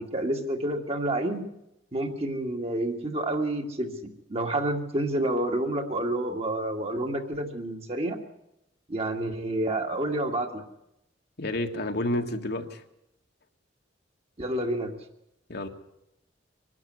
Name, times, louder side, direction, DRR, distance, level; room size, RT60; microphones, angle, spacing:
voice 1, 0.0-1.4 1.9-3.9 4.3-8.2 8.9-10.6 14.4-15.0, right 1 dB, 35° right, 3 dB, 2.1 m, -29 dB
voice 2, 11.4-12.8 15.5-15.7, left 1 dB, 60° left, 4 dB, 1.8 m, -30 dB
24.5 x 12.0 x 9.5 m, 0.84 s
head